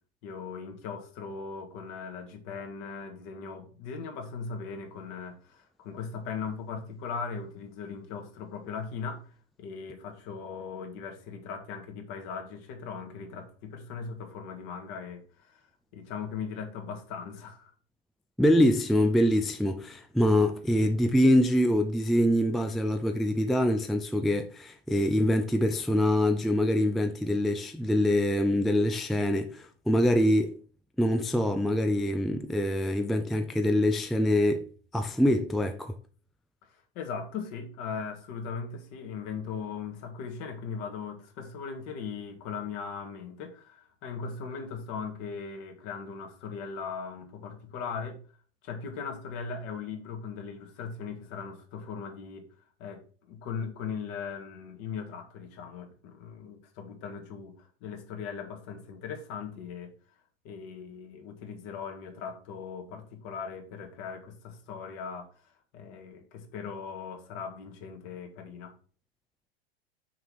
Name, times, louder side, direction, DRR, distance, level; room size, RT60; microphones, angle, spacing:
voice 1, 0.2-9.3 9.6-15.7 15.9-17.7 36.7-48.2 48.6-52.5 52.8-53.0 53.3-59.9 60.4-68.7, left 5 dB, 50° left, 2.1 m, -39 dB
voice 2, 18.4-30.6 31.0-34.7 34.9-36.0, left 1 dB, ahead, 0.3 m, -25 dB
6.3 x 4.8 x 5.8 m
hypercardioid pair, 100°, 31 cm